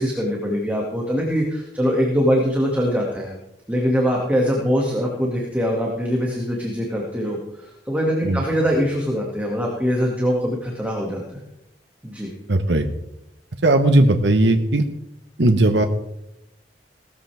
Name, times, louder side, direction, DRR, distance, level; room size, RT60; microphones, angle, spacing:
voice 1, 0.0-3.3 3.7-11.4 12.0-12.3, equal, 10° right, -2 dB, 2.2 m, -23 dB
voice 2, 12.5-12.9 13.6-14.9 15.4-15.8, right 1 dB, 75° right, 5 dB, 1.2 m, -17 dB
18.0 x 13.5 x 3.5 m, 0.85 s
head